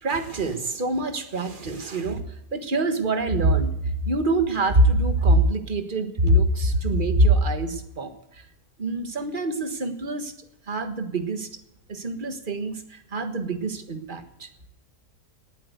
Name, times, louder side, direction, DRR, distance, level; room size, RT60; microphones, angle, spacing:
voice 1, 0.0-2.2 2.5-8.1 8.8-10.3 10.7-11.5 11.9-14.5, right 1 dB, 35° right, 8 dB, 1.6 m, -24 dB
18.5 x 8.5 x 8.1 m, 0.81 s
omnidirectional pair, 1.7 m